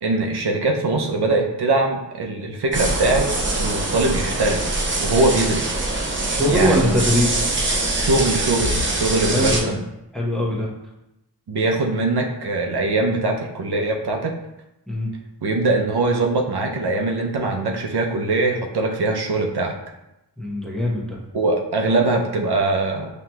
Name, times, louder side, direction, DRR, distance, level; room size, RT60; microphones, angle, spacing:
voice 1, 0.0-3.3 3.6-4.6 5.0-5.8 6.5-7.0 8.0-9.8 11.5-14.3 15.4-19.7 21.3-23.1, right 2 dB, 70° right, 1 dB, 0.6 m, -22 dB
sound 1, 2.7-9.6, right 2 dB, 30° right, 0.7 m, -23 dB
voice 2, 6.3-7.4 9.2-9.7 10.1-10.7 14.9-15.1 20.4-21.2, left 1 dB, ahead, -3 dB, 0.8 m, -22 dB
5.7 x 2.9 x 2.2 m, 0.90 s
wide cardioid pair, 80°, 42 cm